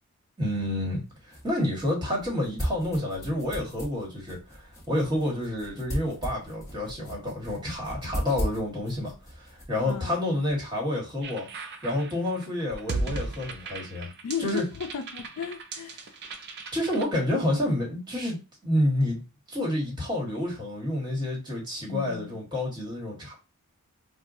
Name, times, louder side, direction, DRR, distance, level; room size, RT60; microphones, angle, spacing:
voice 1, 0.4-11.5 11.8-14.1 14.4-14.6 16.7-18.4 18.6-19.2 19.5-23.3, left 1 dB, 20° right, 1.4 m, -29 dB
sound 1, 0.9-10.7, equal, 15° left, 0.9 m, -38 dB
voice 2, 9.8-10.2 14.2-16.2 21.9-22.4, left 7 dB, 80° left, 0.4 m, -35 dB
sound 2, 11.2-17.0, right 3 dB, 50° right, 0.5 m, -36 dB
4.4 x 2.2 x 2.6 m
head